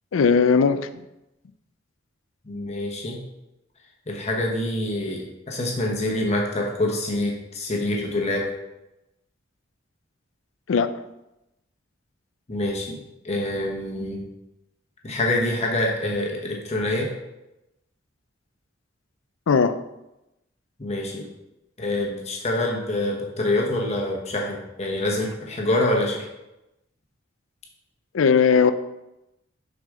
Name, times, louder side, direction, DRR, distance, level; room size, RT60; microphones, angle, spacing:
voice 1, 0.1-0.9 10.7-10.9 19.5-19.8 28.1-28.7, left 5 dB, 85° left, 12 dB, 0.4 m, -18 dB
voice 2, 2.4-3.2 4.1-8.5 12.5-13.0 13.2-14.2 15.0-17.1 20.8-21.3 21.8-26.3, left 1 dB, 35° left, -1 dB, 1.0 m, -26 dB
6.4 x 4.9 x 3.7 m, 0.92 s
head